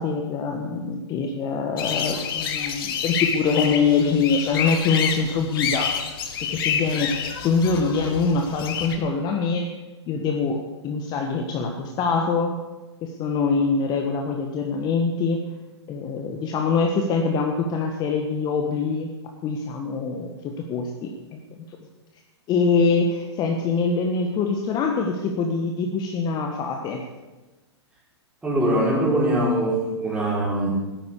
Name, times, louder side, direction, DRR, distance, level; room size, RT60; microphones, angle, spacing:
voice 1, 0.0-5.9 6.4-9.7 10.1-12.6 13.0-15.5 15.9-19.1 19.4-21.4 22.5-27.1, left 4 dB, 25° left, 3 dB, 1.5 m, -24 dB
sound 1, 1.8-9.0, left 7 dB, 50° left, 1.9 m, -28 dB
voice 2, 28.4-30.7, right 1 dB, 10° right, -4 dB, 5.2 m, -22 dB
13.5 x 10.5 x 8.4 m, 1.2 s
figure-of-eight pair, 120°, 15 cm